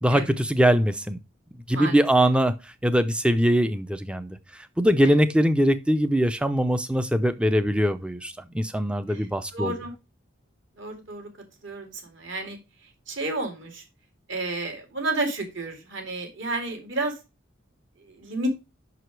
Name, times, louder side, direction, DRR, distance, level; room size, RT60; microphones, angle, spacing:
voice 1, 0.0-1.2 1.5-9.7, equal, 5° right, 0.4 m, -22 dB
voice 2, 1.7-2.0 5.0-5.1 9.1-9.2 9.5-9.9 10.8-11.3 11.6-12.6 13.1-13.8 14.3-17.1 18.0-18.5, right 2 dB, 60° right, 2.2 m, -31 dB
5.9 x 4.9 x 4.5 m
head